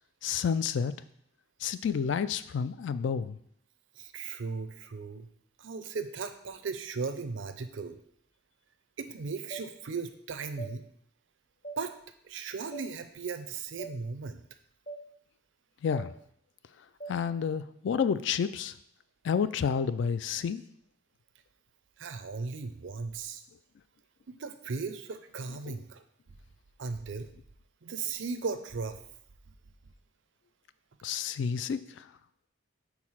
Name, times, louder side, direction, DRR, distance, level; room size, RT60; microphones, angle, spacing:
voice 1, 0.2-0.9 1.6-3.4 15.8-16.1 17.1-18.7 19.2-20.6 25.7-25.8 31.0-32.0, left 6 dB, 60° left, 14 dB, 0.3 m, -30 dB
voice 2, 4.0-5.3 5.6-8.0 9.0-10.9 11.8-11.9 12.2-14.4 22.0-23.4 24.3-26.0 26.8-27.3 27.8-29.0, right 4 dB, 70° right, 10 dB, 0.5 m, -37 dB
sound 1, 9.5-9.7 10.6-10.7 11.6-11.8 12.7-12.9 13.8-13.9 14.9-15.0 15.9-16.1 17.0-17.2, right 2 dB, 35° left, 0.7 m, -40 dB
4.8 x 4.2 x 5.6 m, 0.69 s
head